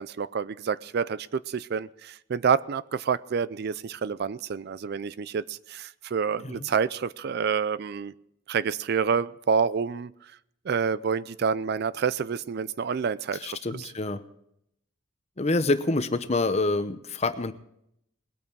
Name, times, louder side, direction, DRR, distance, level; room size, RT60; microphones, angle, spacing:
voice 1, 0.0-8.1 8.5-10.3 10.6-13.9, right 6 dB, 55° right, 0.4 m, -28 dB
voice 2, 13.4-14.2 15.4-17.5, left 2 dB, 35° left, 0.8 m, -26 dB
20.0 x 8.8 x 4.6 m
head